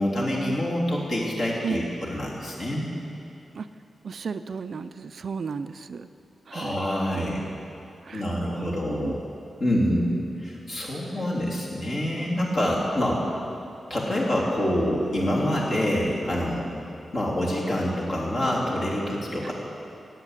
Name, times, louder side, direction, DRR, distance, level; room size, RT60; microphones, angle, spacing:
voice 1, 0.0-2.9 6.5-7.4 8.1-9.2 9.6-13.4 13.9-16.6 17.1-19.5, equal, 45° left, -5 dB, 3.3 m, -26 dB
voice 2, 4.0-6.1 6.5-6.8 7.1-7.4 8.0-8.2 8.6-9.2, right 5 dB, 50° right, 10 dB, 0.4 m, -34 dB
18.0 x 8.3 x 8.0 m, 2.8 s
wide cardioid pair, 180°, 0 cm